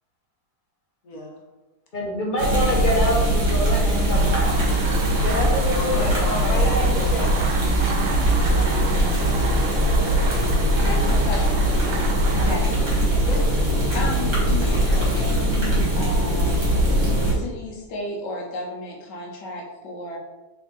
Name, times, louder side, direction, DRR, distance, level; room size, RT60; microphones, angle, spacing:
voice 1, 1.9-4.6 5.2-7.3, left 1 dB, 40° left, -3 dB, 0.8 m, -26 dB
sound 1, 2.4-17.3, right 1 dB, 45° right, 1.9 m, -21 dB
sound 2, 4.1-13.5, right 5 dB, 80° right, 1.2 m, -32 dB
voice 2, 5.7-7.4 8.3-10.1 10.7-11.2 13.2-13.7, left 1 dB, 60° left, -1 dB, 1.1 m, -33 dB
voice 3, 10.8-12.8 13.9-16.7 17.2-20.2, left 1 dB, 80° left, 0 dB, 1.5 m, -33 dB
3.7 x 3.5 x 3.7 m, 1.2 s
omnidirectional pair, 1.8 m